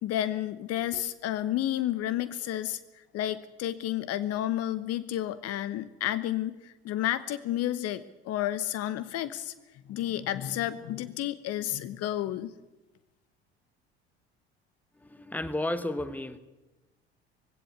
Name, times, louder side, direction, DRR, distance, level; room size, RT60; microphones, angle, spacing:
voice 1, 0.0-2.8 3.1-9.5 9.9-12.5, left 12 dB, 50° left, 1.1 m, -31 dB
voice 2, 15.0-16.4, left 1 dB, 5° left, 1.4 m, -33 dB
20.0 x 16.5 x 8.3 m
figure-of-eight pair, 60°, 33 cm